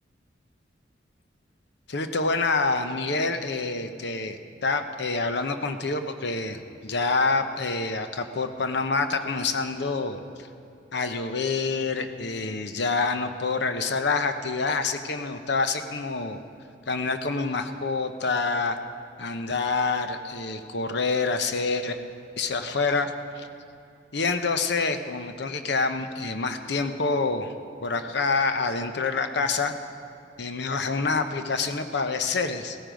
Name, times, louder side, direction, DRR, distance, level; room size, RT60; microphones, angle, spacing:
voice 1, 1.9-10.5 10.9-16.4 16.9-18.8 19.2-22.0 22.4-23.5 24.1-27.5 27.8-29.8 30.4-32.8, left 4 dB, 65° left, 8 dB, 0.8 m, -27 dB
16.5 x 14.0 x 5.1 m, 2.5 s
head